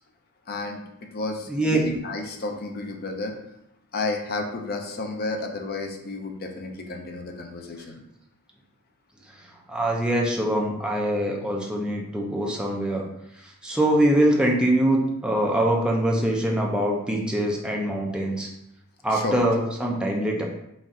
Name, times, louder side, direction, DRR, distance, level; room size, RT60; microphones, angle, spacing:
voice 1, 0.5-0.8 1.1-3.4 3.9-8.0 19.1-19.4, left 3 dB, 45° left, 3 dB, 0.5 m, -31 dB
voice 2, 1.5-1.8 9.7-13.0 13.4-18.5 19.0-20.4, right 1 dB, 5° right, -1 dB, 0.5 m, -23 dB
4.1 x 2.5 x 3.6 m, 0.81 s
head